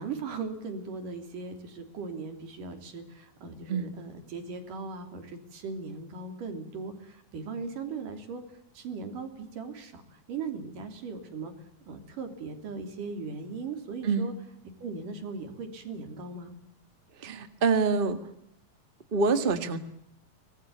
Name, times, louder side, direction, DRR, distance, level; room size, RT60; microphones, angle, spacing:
voice 1, 0.0-8.4 8.7-11.5 11.9-14.3 14.8-16.5, right 4 dB, 90° right, 6 dB, 4.8 m, -38 dB
voice 2, 17.2-18.2 19.1-19.8, right 4 dB, 25° right, 9 dB, 1.4 m, -26 dB
24.5 x 20.0 x 8.7 m, 0.73 s
omnidirectional pair, 3.7 m